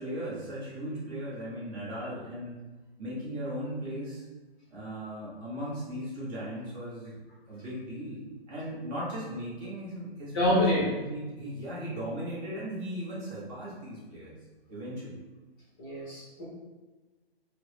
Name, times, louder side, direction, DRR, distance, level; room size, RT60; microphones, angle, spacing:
voice 1, 0.0-2.6 3.0-4.3 4.7-7.2 7.5-8.2 8.5-14.3 14.7-15.1, equal, 20° right, -8 dB, 0.9 m, -37 dB
voice 2, 10.3-10.9 15.8-16.4, left 1 dB, 20° left, -6 dB, 0.7 m, -26 dB
4.4 x 2.0 x 3.1 m, 1.2 s
hypercardioid pair, 145°, 32 cm